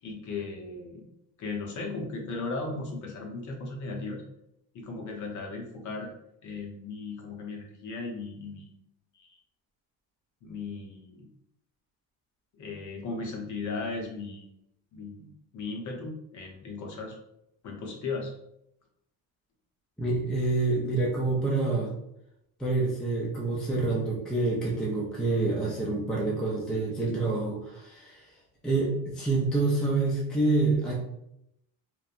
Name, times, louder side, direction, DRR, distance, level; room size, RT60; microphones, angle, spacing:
voice 1, 0.0-1.1 1.4-4.2 4.7-6.1 6.4-8.7 9.1-9.4 10.4-11.3 12.6-14.4 14.9-17.1 17.6-18.3, left 3 dB, 50° left, 1 dB, 0.7 m, -36 dB
voice 2, 20.0-21.9 22.6-28.3 28.6-30.9, right 3 dB, ahead, -4 dB, 0.4 m, -27 dB
2.9 x 2.1 x 2.4 m, 0.79 s
cardioid pair, 135°, 38 cm